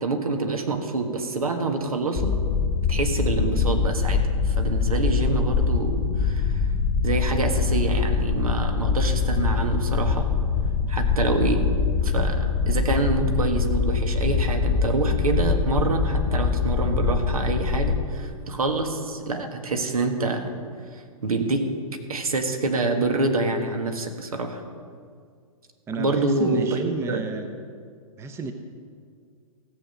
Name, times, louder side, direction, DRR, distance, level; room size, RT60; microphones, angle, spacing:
voice 1, 0.0-2.4 2.9-6.7 7.0-10.3 10.9-11.7 12.0-20.5 20.9-21.7 22.1-24.6 26.0-26.8 27.1-27.2, right 3 dB, 75° right, 5 dB, 1.6 m, -26 dB
sound 1, 2.2-18.0, left 5 dB, 35° left, 1.1 m, -23 dB
voice 2, 25.9-27.6 28.2-28.5, right 3 dB, 15° right, 7 dB, 0.7 m, -31 dB
16.0 x 6.9 x 6.5 m, 2.1 s
figure-of-eight pair, 120°, 19 cm